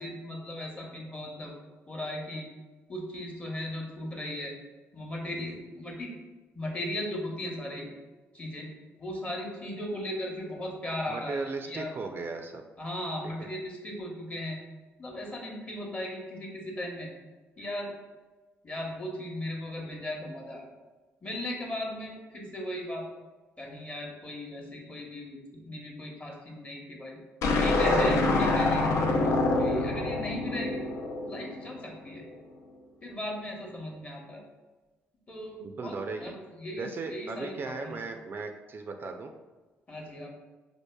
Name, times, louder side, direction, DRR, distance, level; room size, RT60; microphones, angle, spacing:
voice 1, 0.0-1.5 1.9-2.5 2.9-4.6 4.9-6.1 6.5-7.9 8.3-8.7 9.0-11.9 12.8-14.6 15.0-17.1 17.6-17.9 18.6-20.7 21.2-23.1 23.6-25.4 25.6-27.2 27.6-29.2 29.4-30.8 31.2-32.2 33.0-34.5 35.3-38.0 39.9-40.3, left 1 dB, 30° left, 0 dB, 0.9 m, -37 dB
voice 2, 11.1-12.6 35.6-36.3 36.8-39.3, right 4 dB, 45° right, 4 dB, 0.3 m, -36 dB
sound 1, 27.4-31.8, left 2 dB, 80° left, 0.4 m, -26 dB
4.5 x 2.5 x 2.2 m, 1.2 s
supercardioid pair, 70°, 5 cm